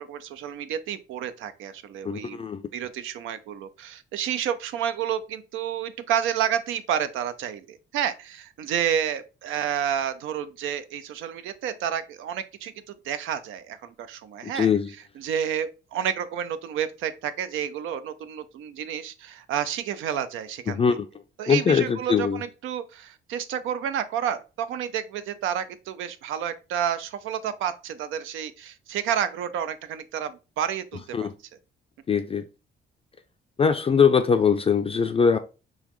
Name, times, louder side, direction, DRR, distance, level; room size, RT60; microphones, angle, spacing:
voice 1, 0.0-2.4 2.7-12.7 13.0-14.7 15.2-20.8 21.4-31.3, right 9 dB, 85° right, 0.5 m, -30 dB
voice 2, 2.0-2.6 14.4-14.9 20.7-21.1 21.5-22.4 31.1-31.3 32.1-32.4 33.6-35.4, left 6 dB, 30° left, 0.4 m, -22 dB
3.9 x 3.0 x 3.0 m
cardioid pair, 90°, 20 cm